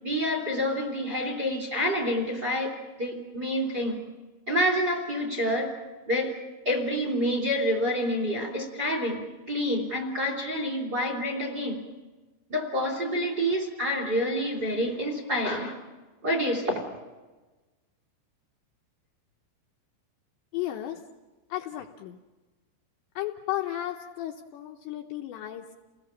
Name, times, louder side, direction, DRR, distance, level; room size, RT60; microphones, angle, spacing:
voice 1, 0.0-4.0 4.5-5.7 6.1-6.3 6.6-11.8 12.5-15.8 16.2-16.8, equal, 25° right, 3 dB, 2.7 m, -28 dB
voice 2, 20.5-21.0 21.5-22.2 23.2-25.7, left 13 dB, 80° left, 2 dB, 2.7 m, -34 dB
30.0 x 19.0 x 7.2 m, 1.2 s
omnidirectional pair, 6.0 m